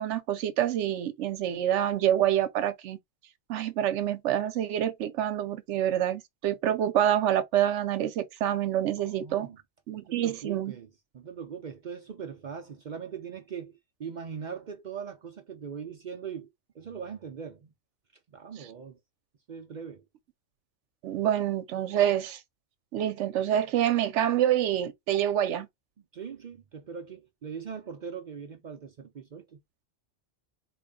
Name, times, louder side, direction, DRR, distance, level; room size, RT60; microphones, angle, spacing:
voice 1, 0.0-3.0 3.5-9.5 9.9-10.7 21.0-22.4 22.9-25.7, right 11 dB, 80° right, 1.0 m, -27 dB
voice 2, 9.0-9.6 10.0-10.9 11.1-17.7 18.3-19.0 19.5-20.1 26.1-29.6, right 7 dB, 55° right, 0.6 m, -40 dB
3.8 x 2.2 x 3.6 m
omnidirectional pair, 1.2 m